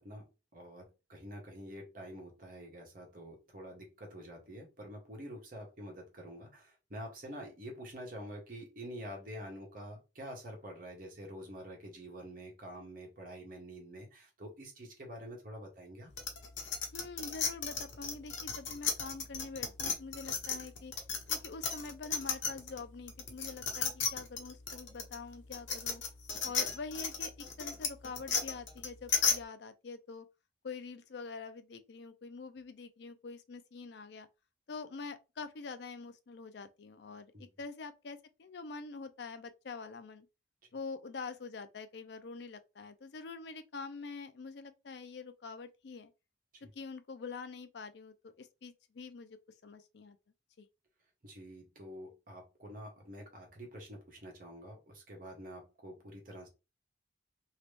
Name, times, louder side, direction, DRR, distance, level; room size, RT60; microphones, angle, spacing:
voice 1, 0.0-16.1 37.3-37.5 51.2-56.5, equal, 45° right, 1.3 m, -47 dB
sound 1, 16.2-22.8 23.1-29.4, left 6 dB, 80° left, 1.0 m, -34 dB
voice 2, 16.9-20.9 21.3-26.0 26.4-27.3 27.6-30.3 30.6-34.3 34.7-40.3 40.7-46.1 46.6-49.4 49.6-50.2 50.6-50.7, left 4 dB, 60° left, 0.4 m, -45 dB
3.0 x 2.8 x 3.3 m
head